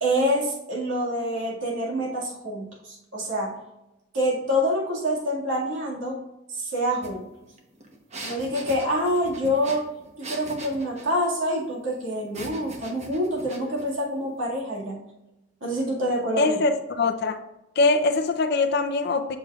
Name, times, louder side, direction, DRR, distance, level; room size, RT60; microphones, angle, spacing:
voice 1, 0.0-3.6 4.1-6.2 6.5-7.3 8.2-9.9 10.2-15.1 15.6-16.5, equal, 75° right, -3 dB, 2.1 m, -26 dB
sound 1, 7.0-7.1 7.4-11.1 12.3-13.9, right 2 dB, 35° right, 1.0 m, -40 dB
voice 2, 16.4-16.7 17.0-17.4 17.8-19.4, left 3 dB, 55° left, 7 dB, 0.6 m, -22 dB
7.2 x 6.4 x 2.4 m, 0.95 s
head